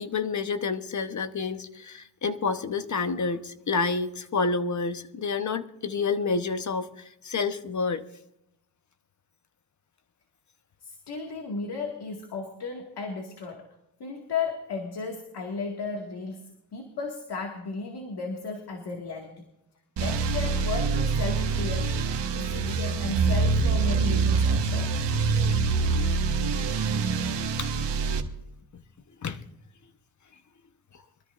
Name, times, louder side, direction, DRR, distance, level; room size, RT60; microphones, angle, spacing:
voice 1, 0.0-8.0 27.6-27.7 29.2-29.4, left 4 dB, 45° left, 9 dB, 1.1 m, -29 dB
voice 2, 10.8-13.7 14.0-19.4 20.0-24.9, left 4 dB, 65° left, 1 dB, 2.1 m, -35 dB
sound 1, 20.0-28.2, right 4 dB, 85° right, 1.5 m, -25 dB
24.5 x 13.5 x 2.6 m, 0.86 s
cardioid pair, 105°, 42 cm